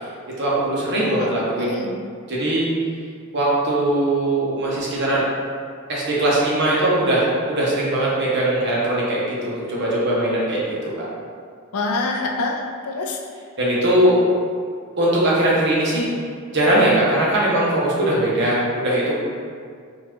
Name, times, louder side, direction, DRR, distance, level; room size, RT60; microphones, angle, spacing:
voice 1, 0.4-1.8 2.3-2.7 3.3-5.3 5.9-11.1 13.6-14.2 15.0-16.0 16.5-19.1, right 1 dB, 55° right, -6 dB, 0.9 m, -20 dB
voice 2, 0.9-1.3 1.6-2.0 11.7-13.2, left 3 dB, 80° left, 0 dB, 0.4 m, -26 dB
3.8 x 2.4 x 2.9 m, 2.2 s
head